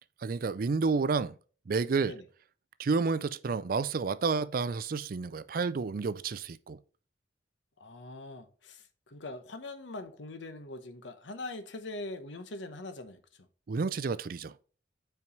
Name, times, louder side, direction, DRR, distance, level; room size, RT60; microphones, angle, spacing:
voice 1, 0.2-1.3 1.7-2.1 2.8-6.8 13.7-14.5, right 4 dB, 50° right, 0.4 m, -30 dB
voice 2, 7.8-13.2, left 2 dB, 85° left, 1.0 m, -42 dB
5.7 x 4.6 x 5.1 m
head